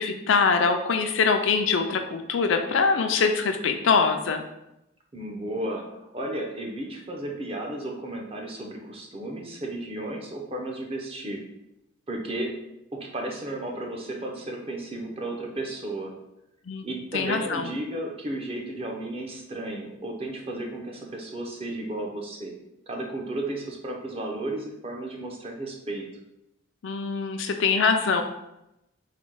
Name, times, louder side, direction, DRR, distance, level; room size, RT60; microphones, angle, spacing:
voice 1, 0.0-4.4 16.7-16.9 17.1-17.7 26.8-28.2, left 5 dB, 65° left, 6 dB, 0.4 m, -23 dB
voice 2, 5.1-11.4 12.1-12.5 12.9-16.1 16.8-22.5 22.9-26.1, right 1 dB, 30° right, 0 dB, 0.7 m, -33 dB
4.1 x 2.2 x 4.6 m, 0.86 s
head